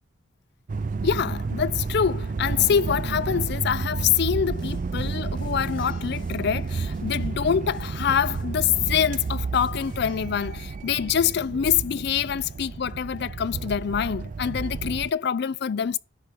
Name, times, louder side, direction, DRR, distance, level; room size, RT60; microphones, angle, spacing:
sound 1, 0.7-15.1, right 4 dB, 40° right, 0.4 m, -31 dB
voice 1, 1.0-16.0, left 8 dB, 55° left, 0.4 m, -25 dB
sound 2, 4.1-10.2, left 1 dB, 25° left, 2.8 m, -52 dB
10.5 x 4.3 x 5.1 m
head